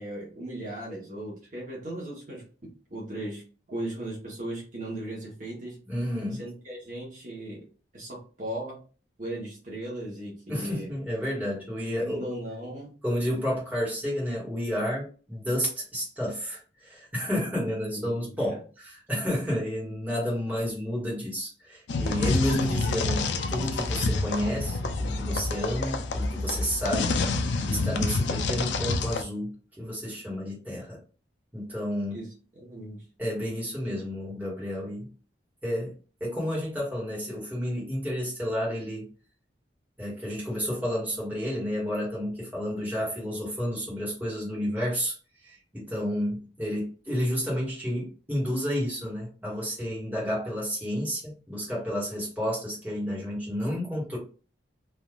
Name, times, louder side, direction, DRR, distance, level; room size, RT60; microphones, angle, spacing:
voice 1, 0.0-3.4 3.7-5.8 6.3-7.6 7.9-8.8 9.2-10.9 11.9-12.9 17.9-18.6 32.1-32.3 32.6-33.0, right 1 dB, 45° right, -4 dB, 1.0 m, -37 dB
voice 2, 5.8-6.4 10.5-12.2 13.0-27.2 27.7-31.0 31.5-32.2 33.2-35.1 35.6-35.9 36.2-39.1 40.0-45.1 45.4-54.2, equal, 10° right, -6 dB, 1.3 m, -31 dB
sound 1, 21.9-29.2, left 3 dB, 75° left, 0.4 m, -28 dB
3.4 x 2.5 x 2.3 m, 0.37 s
head